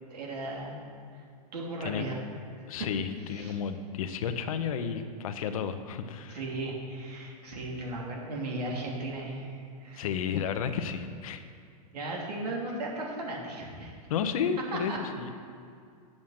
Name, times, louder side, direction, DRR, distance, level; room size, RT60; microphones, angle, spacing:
voice 1, 0.1-0.8 1.1-1.2 1.5-2.2 3.3-3.6 6.3-10.1 11.9-13.9 14.9-15.0, right 2 dB, 90° right, -2 dB, 2.9 m, -36 dB
voice 2, 2.7-6.4 10.0-11.4 14.1-15.3, left 7 dB, 60° left, 9 dB, 0.8 m, -32 dB
9.0 x 7.4 x 6.5 m, 2.3 s
supercardioid pair, 165°, 20 cm